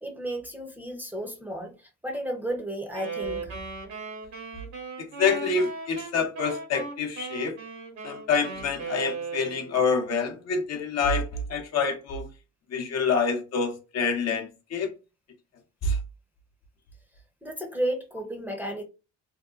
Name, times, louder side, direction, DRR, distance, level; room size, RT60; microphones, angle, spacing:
voice 1, 0.0-3.6 17.4-18.8, right 1 dB, 5° right, 0.6 m, -33 dB
Wind instrument woodwind instrument, 2.9-9.9, right 4 dB, 70° right, 1.1 m, -37 dB
voice 2, 5.2-7.6 8.0-12.3 12.7-14.9 15.8-16.0, left 4 dB, 60° left, 0.7 m, -27 dB
2.7 x 2.2 x 2.3 m
cardioid pair, 90°, 30 cm